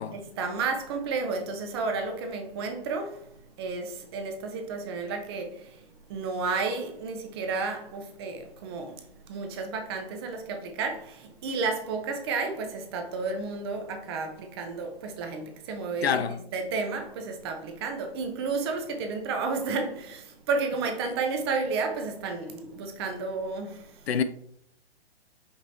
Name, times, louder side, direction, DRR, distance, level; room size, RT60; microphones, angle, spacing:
voice 1, 0.1-5.8 6.1-24.0, right 4 dB, 25° right, 0.5 m, -32 dB
voice 2, 16.0-16.4 24.1-24.2, left 7 dB, 70° left, 0.5 m, -26 dB
5.1 x 3.0 x 2.7 m
figure-of-eight pair, 125°, 32 cm